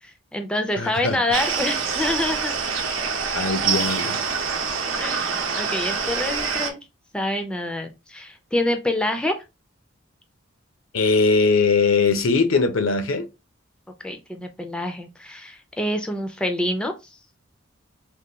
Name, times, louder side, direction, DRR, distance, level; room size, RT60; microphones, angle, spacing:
voice 1, 0.0-2.5 5.0-6.8 7.1-9.4 14.0-17.2, left 1 dB, 5° left, 0.4 m, -27 dB
voice 2, 0.8-1.2 3.3-4.2 10.9-13.3, left 4 dB, 80° left, 0.6 m, -20 dB
sound 1, 1.3-6.7, right 5 dB, 80° right, 0.7 m, -25 dB
3.5 x 2.2 x 2.8 m
head